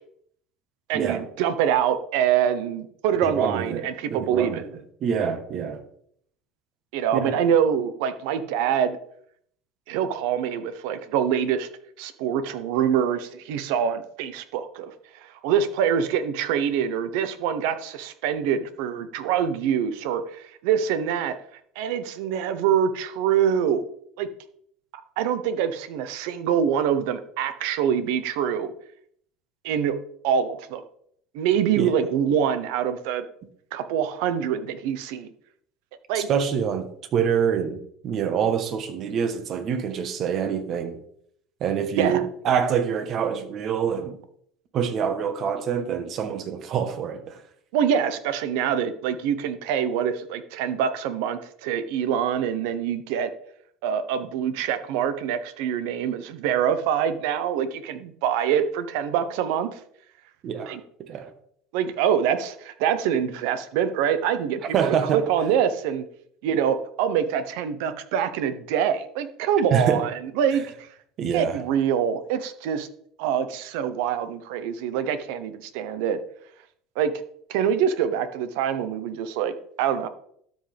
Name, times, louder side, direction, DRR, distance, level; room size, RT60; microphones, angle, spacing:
voice 1, 0.9-4.7 6.9-9.0 9.9-11.7 12.0-21.4 21.7-23.8 24.2-24.3 25.2-28.7 29.6-30.0 30.2-30.8 31.3-33.2 33.7-35.3 36.1-36.3 42.0-42.2 47.7-53.3 53.8-59.8 60.7-60.8 61.7-64.7 65.1-66.0 66.4-70.9 71.3-72.9 73.2-76.2 77.0-77.1 77.5-80.1, right 8 dB, 75° right, 1.0 m, -25 dB
voice 2, 3.1-5.8 7.1-7.4 31.8-31.9 36.1-36.9 37.1-41.0 41.6-44.2 44.7-47.4 60.4-61.3 64.7-65.2 69.7-70.0 71.2-71.6, right 7 dB, 45° right, 1.4 m, -26 dB
12.5 x 8.0 x 3.5 m
cardioid pair, 135°, 0 cm